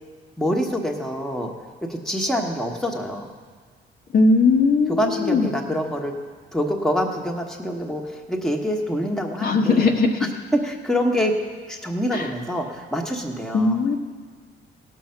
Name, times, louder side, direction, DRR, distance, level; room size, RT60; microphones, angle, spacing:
voice 1, 0.4-1.5 1.8-3.3 4.9-6.1 6.5-9.9 10.5-11.4 11.7-13.8, equal, ahead, 1 dB, 1.4 m, -25 dB
voice 2, 4.1-5.5 9.4-10.1 12.1-12.3 13.5-14.0, left 3 dB, 50° left, 1 dB, 1.4 m, -19 dB
17.0 x 6.5 x 5.8 m, 1.5 s
cardioid pair, 90°, 20 cm